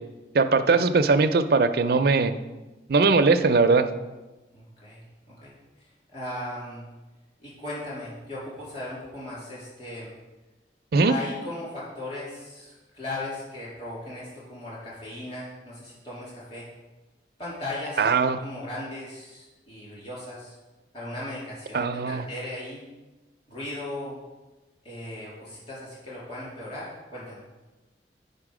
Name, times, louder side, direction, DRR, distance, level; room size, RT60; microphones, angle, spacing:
voice 1, 0.3-2.3 2.9-3.9 10.9-11.1 18.0-18.4 21.7-22.3, right 4 dB, 60° right, 8 dB, 0.5 m, -20 dB
voice 2, 4.5-6.8 7.4-10.1 11.1-16.6 17.4-18.1 18.4-20.6 20.9-22.9 23.5-24.2 24.8-27.4, left 1 dB, 35° left, -7 dB, 3.2 m, -37 dB
8.9 x 5.5 x 4.9 m, 1.1 s
head